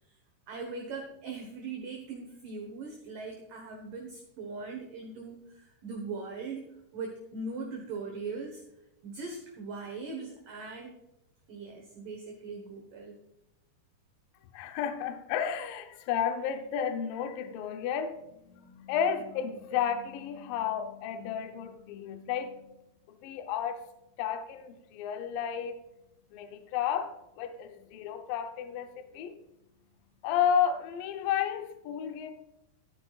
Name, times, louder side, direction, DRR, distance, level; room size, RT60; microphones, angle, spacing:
voice 1, 0.5-8.6 9.0-10.9 11.5-13.2, right 4 dB, 65° right, 1 dB, 2.4 m, -40 dB
voice 2, 14.5-22.8 23.2-23.8 24.2-25.8 26.3-29.4 30.2-32.3, left 8 dB, 75° left, 7 dB, 2.2 m, -32 dB
13.5 x 9.6 x 2.5 m, 0.89 s
omnidirectional pair, 5.0 m